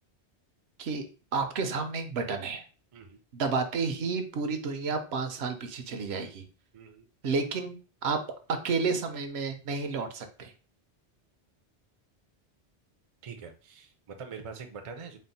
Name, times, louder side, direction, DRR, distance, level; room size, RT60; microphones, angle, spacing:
voice 1, 1.3-2.6 3.3-6.5 7.2-7.8 8.0-8.2 8.6-10.5, right 4 dB, 70° right, 6 dB, 0.9 m, -31 dB
voice 2, 6.7-7.1 13.2-15.2, right 5 dB, 45° right, 6 dB, 0.4 m, -44 dB
4.3 x 2.1 x 4.0 m, 0.36 s
omnidirectional pair, 1.1 m